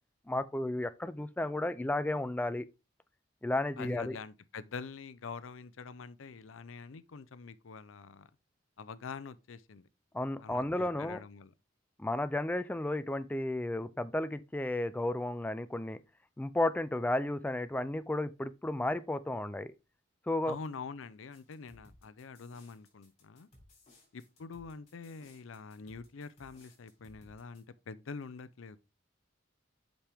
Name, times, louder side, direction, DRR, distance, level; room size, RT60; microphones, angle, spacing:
voice 1, 0.3-2.7 3.4-4.2 10.1-11.2 12.0-16.0 16.4-19.7 20.3-20.6, left 1 dB, 10° left, 0.3 m, -33 dB
voice 2, 3.8-8.3 8.8-9.9 10.4-11.5 20.5-23.5 24.1-28.8, left 5 dB, 80° left, 0.5 m, -45 dB
sound 1, 21.3-27.6, left 1 dB, 35° left, 3.7 m, -61 dB
7.3 x 5.3 x 3.4 m
head